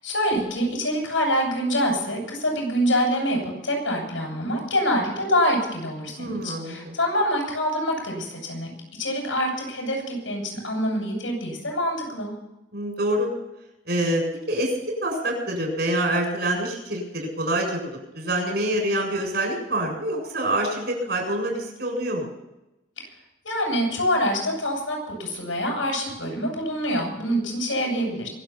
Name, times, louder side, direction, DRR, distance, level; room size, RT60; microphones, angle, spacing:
voice 1, 0.0-8.7 9.0-12.3 23.0-23.1 23.4-28.3, equal, 90° left, 1 dB, 7.3 m, -25 dB
voice 2, 6.2-6.9 12.7-13.3 13.9-14.2 14.5-14.7 15.0-22.3, right 1 dB, 55° right, 1 dB, 7.3 m, -26 dB
24.5 x 8.3 x 5.9 m, 0.92 s
head